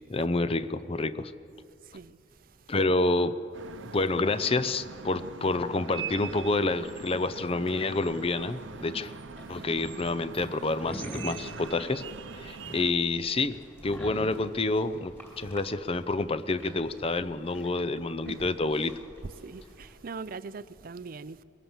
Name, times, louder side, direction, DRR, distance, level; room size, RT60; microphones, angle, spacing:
voice 1, 0.1-1.3 2.7-3.4 3.9-9.1 9.5-12.0 12.4-18.9, left 2 dB, 30° left, 0.6 m, -28 dB
sound 1, 3.5-12.9, right 5 dB, 80° right, 0.8 m, -42 dB
sound 2, 6.0-19.9, equal, 10° left, 4.3 m, -47 dB
voice 2, 19.2-21.4, right 4 dB, 50° right, 0.5 m, -41 dB
22.0 x 17.0 x 7.2 m
head